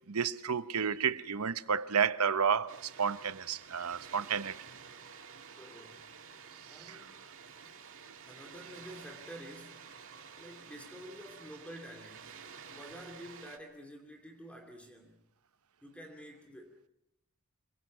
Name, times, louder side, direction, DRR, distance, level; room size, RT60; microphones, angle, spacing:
voice 1, 0.1-4.6 6.8-7.0, right 6 dB, 80° right, 0.9 m, -31 dB
Water, 2.7-13.6, right 6 dB, 65° right, 2.1 m, -51 dB
voice 2, 5.5-6.0 6.7-7.2 8.2-9.9 10.3-12.3 12.7-15.2 15.8-16.9, equal, 5° left, 2.6 m, -49 dB
26.5 x 24.0 x 5.6 m
head